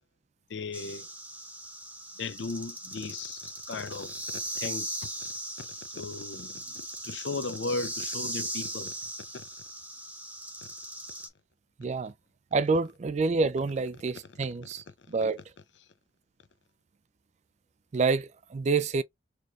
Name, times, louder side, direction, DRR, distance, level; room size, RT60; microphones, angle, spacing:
voice 1, 0.5-1.1 2.2-4.1 4.5-5.0 5.9-8.9 9.3-9.4, left 3 dB, 80° left, 0.6 m, -36 dB
sound 1, 0.7-11.3, right 1 dB, 10° right, 0.9 m, -39 dB
voice 2, 11.8-12.1 12.5-15.4 17.9-19.0, right 4 dB, 40° right, 0.3 m, -28 dB
4.4 x 3.1 x 2.4 m
head